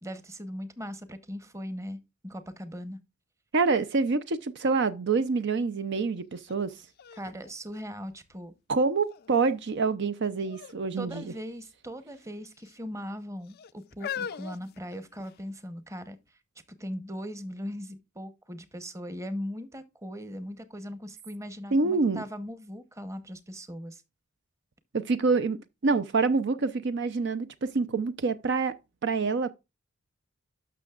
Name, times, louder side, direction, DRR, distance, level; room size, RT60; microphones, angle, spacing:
voice 1, 0.0-2.0 2.2-3.0 7.2-8.5 10.9-16.4 16.8-24.0, equal, 15° right, 0.9 m, -39 dB
voice 2, 3.5-6.7 8.7-11.2 21.7-22.2 24.9-28.8 29.0-29.5, right 4 dB, 55° right, 0.5 m, -26 dB
sound 1, 6.4-6.5 7.0-8.5 9.1-9.6 10.4-10.8 11.1-11.2 12.1-12.8 13.5-15.5 16.3-16.4, left 8 dB, 50° left, 0.4 m, -41 dB
12.5 x 6.1 x 2.4 m
head